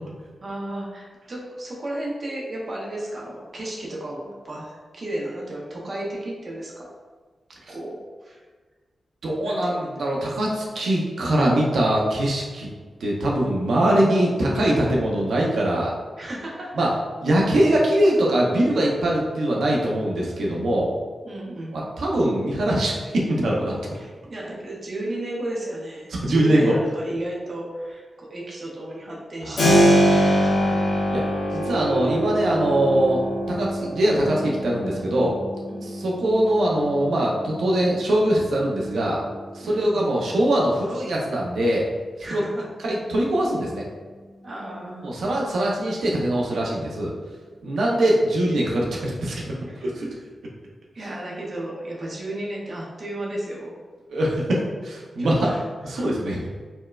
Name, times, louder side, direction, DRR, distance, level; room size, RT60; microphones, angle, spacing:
voice 1, 0.4-6.8 7.7-8.4 9.4-9.9 16.2-16.9 21.2-21.8 23.9-30.2 30.4-30.9 35.7-35.9 39.6-40.1 42.2-42.6 44.4-45.1 49.7-49.9 50.9-53.7 55.2-56.2, right 1 dB, 40° right, -3 dB, 0.6 m, -34 dB
voice 2, 9.2-12.7 13.0-15.9 16.8-16.9 17.2-20.9 21.7-23.8 26.1-26.8 29.5-29.7 31.1-31.2 31.5-33.2 33.5-35.4 35.8-39.2 39.5-41.9 42.3-42.4 42.8-43.8 45.0-47.1 47.6-49.4 49.8-50.1 54.1-55.5 55.8-56.5, right 1 dB, 90° right, -3 dB, 0.6 m, -22 dB
Keyboard (musical), 29.6-40.3, equal, 85° left, 0.9 m, -24 dB
4.3 x 2.1 x 2.3 m, 1.4 s
wide cardioid pair, 170°, 0 cm